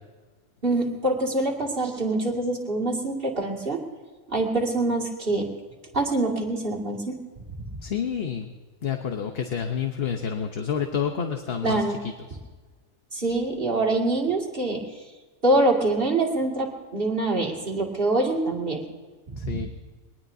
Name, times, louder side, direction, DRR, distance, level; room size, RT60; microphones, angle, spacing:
voice 1, 0.6-3.8 4.3-5.5 5.9-7.2 11.6-12.0 13.1-14.9 15.4-18.8 19.4-19.6, right 2 dB, 40° right, -1 dB, 2.5 m, -25 dB
voice 2, 7.8-8.5 8.8-11.8 12.3-12.4 19.4-19.7, left 7 dB, 50° left, 5 dB, 1.1 m, -28 dB
22.5 x 19.0 x 2.7 m, 1.3 s
omnidirectional pair, 1.4 m